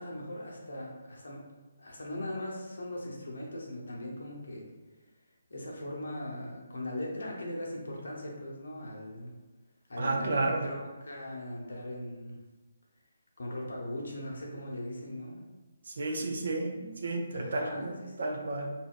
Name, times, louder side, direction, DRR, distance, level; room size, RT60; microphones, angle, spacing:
voice 1, 0.0-1.4 1.8-4.7 5.5-9.3 9.9-12.4 13.4-15.4 16.7-16.9 17.3-18.4, left 1 dB, 60° left, -2 dB, 0.7 m, -39 dB
voice 2, 10.0-10.7 15.9-18.7, right 2 dB, 55° right, 2 dB, 0.4 m, -32 dB
2.3 x 2.2 x 3.6 m, 1.2 s
figure-of-eight pair, 140°, 0 cm